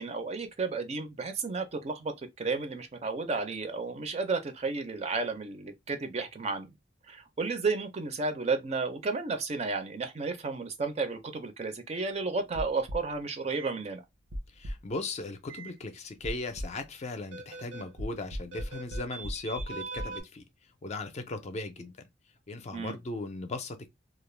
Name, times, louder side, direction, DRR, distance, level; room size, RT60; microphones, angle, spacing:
voice 1, 0.0-6.7 7.1-14.0 22.7-23.0, right 4 dB, 35° right, 0.5 m, -32 dB
sound 1, 12.5-13.1 13.5-13.7 14.3-14.9 15.5-15.7 16.2-16.8 17.3-20.2, right 1 dB, 80° right, 0.7 m, -38 dB
voice 2, 14.5-20.4 20.8-21.9 22.5-23.9, left 2 dB, 35° left, 0.4 m, -37 dB
2.3 x 2.1 x 3.1 m
head